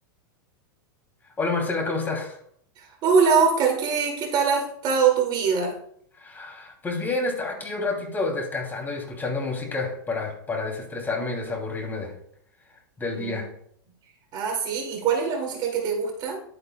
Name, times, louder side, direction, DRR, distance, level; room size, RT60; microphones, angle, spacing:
voice 1, 1.4-2.4 6.2-12.1 13.0-13.5, left 3 dB, 15° left, 1 dB, 2.9 m, -29 dB
voice 2, 2.8-5.7 13.1-13.4 14.3-16.4, right 6 dB, 35° right, 1 dB, 2.4 m, -23 dB
11.0 x 9.6 x 2.3 m, 0.66 s
hypercardioid pair, 120°, 12 cm